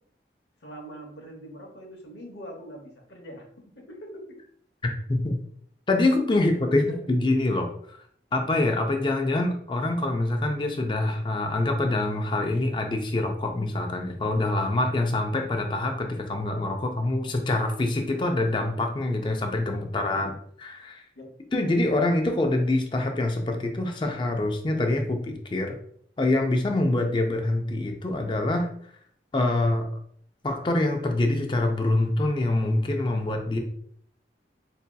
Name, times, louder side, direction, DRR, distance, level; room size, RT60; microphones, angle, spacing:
voice 1, 0.6-3.5 3.7-4.4 6.6-7.1 20.1-20.3 21.1-21.3, equal, 80° left, 2 dB, 0.9 m, -42 dB
voice 2, 5.9-6.8 7.1-7.7 8.3-20.3 20.6-21.0 21.5-25.7 26.2-28.7 29.3-29.9 30.4-33.6, left 2 dB, 25° left, 4 dB, 0.4 m, -25 dB
4.7 x 2.7 x 2.2 m, 0.63 s
head